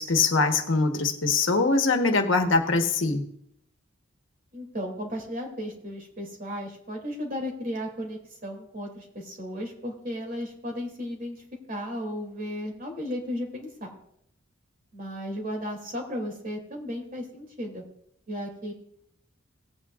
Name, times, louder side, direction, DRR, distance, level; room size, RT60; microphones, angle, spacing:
voice 1, 0.0-3.2, left 3 dB, 90° left, 5 dB, 1.2 m, -23 dB
voice 2, 4.5-11.4 11.7-13.9 14.9-17.8 18.3-18.7, equal, 45° right, 1 dB, 2.6 m, -35 dB
18.0 x 8.9 x 2.4 m, 0.73 s
head